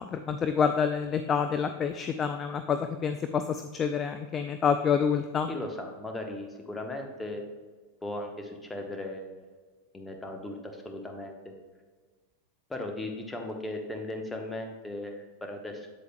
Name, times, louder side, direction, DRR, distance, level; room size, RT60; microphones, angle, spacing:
voice 1, 0.0-5.5, left 6 dB, 25° left, 8 dB, 0.3 m, -28 dB
voice 2, 5.5-7.5 8.0-9.4 9.9-11.6 12.7-15.9, left 1 dB, 10° left, 3 dB, 1.0 m, -37 dB
8.1 x 7.9 x 2.2 m, 1.3 s
figure-of-eight pair, 90°, 0 cm